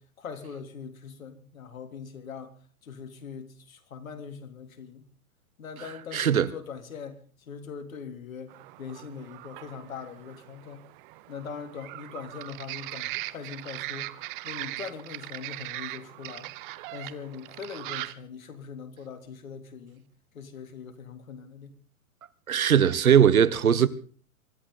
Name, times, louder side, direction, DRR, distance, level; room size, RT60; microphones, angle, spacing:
voice 1, 0.0-2.6 2.8-5.1 5.6-10.8 11.3-14.1 14.4-16.5 16.9-20.1 20.3-21.8, left 6 dB, 70° left, 3.4 m, -41 dB
voice 2, 6.1-6.5 22.5-23.9, right 8 dB, 80° right, 1.3 m, -20 dB
sound 1, 8.5-18.1, right 18 dB, 40° right, 1.0 m, -40 dB
24.0 x 13.5 x 3.9 m
hypercardioid pair, 125°, 42 cm